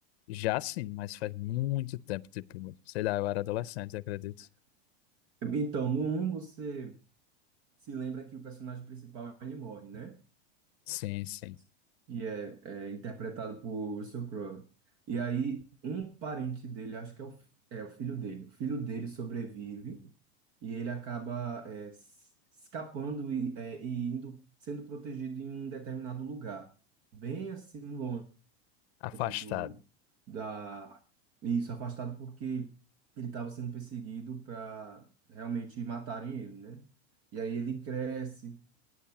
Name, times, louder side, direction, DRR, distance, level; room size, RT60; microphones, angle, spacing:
voice 1, 0.3-4.5 10.9-11.6 29.0-29.7, left 17 dB, 70° left, 0.6 m, -34 dB
voice 2, 5.4-7.0 7.8-10.2 12.1-14.6 15.1-17.4 17.7-20.1 20.6-22.3 22.6-26.7 27.1-28.2 29.1-29.7 30.3-31.0 31.4-32.8 33.2-36.8 37.3-38.6, right 6 dB, 45° right, 1.2 m, -37 dB
10.0 x 9.3 x 5.9 m
supercardioid pair, 140°, 33 cm